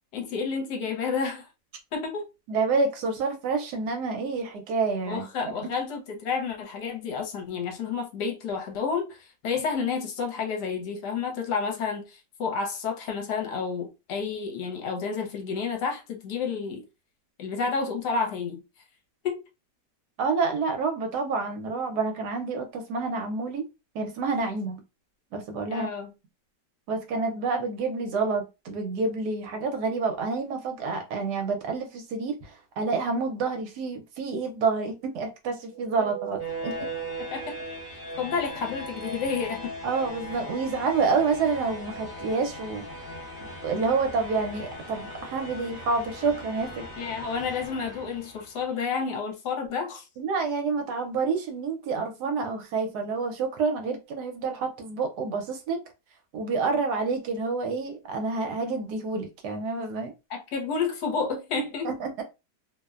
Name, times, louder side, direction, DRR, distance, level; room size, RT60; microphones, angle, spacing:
voice 1, 0.1-1.5 1.9-2.3 5.0-16.8 17.4-18.6 19.2-19.4 25.7-26.1 37.2-37.5 38.2-39.7 47.0-50.0 60.3-61.9, left 5 dB, 70° left, 1.2 m, -30 dB
voice 2, 2.5-5.3 5.6-5.7 20.2-23.7 23.9-24.8 25.3-25.9 26.9-36.9 39.8-42.8 43.6-46.8 50.2-55.8 56.3-60.1 61.8-62.1, right 4 dB, 70° right, 1.1 m, -28 dB
sound 1, 35.7-48.7, right 1 dB, 40° left, 0.9 m, -38 dB
2.9 x 2.1 x 2.3 m
omnidirectional pair, 1.9 m